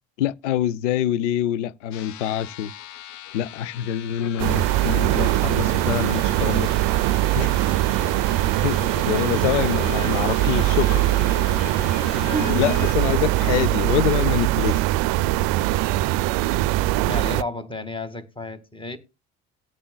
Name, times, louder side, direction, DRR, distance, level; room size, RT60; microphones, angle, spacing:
voice 1, 0.2-2.7 3.3-6.7 7.3-7.5 8.6-11.1 12.6-14.8, left 11 dB, 90° left, 0.5 m, -25 dB
sound 1, 1.9-12.9, left 12 dB, 55° left, 0.9 m, -39 dB
sound 2, 4.4-17.4, right 17 dB, 70° right, 0.5 m, -21 dB
voice 2, 12.1-12.8 17.1-19.0, left 2 dB, 15° left, 1.9 m, -31 dB
18.0 x 8.6 x 2.3 m
hypercardioid pair, 65°, 35 cm